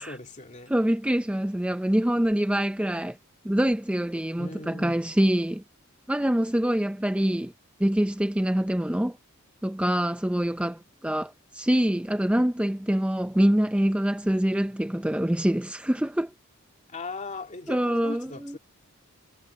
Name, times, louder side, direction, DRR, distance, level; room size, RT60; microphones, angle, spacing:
voice 1, 0.0-0.7 4.4-5.0 16.9-18.6, left 3 dB, 35° left, 2.4 m, -39 dB
voice 2, 0.7-3.2 3.4-5.6 6.1-7.5 7.8-9.2 9.6-16.3 17.7-18.6, equal, 5° right, 0.5 m, -25 dB
head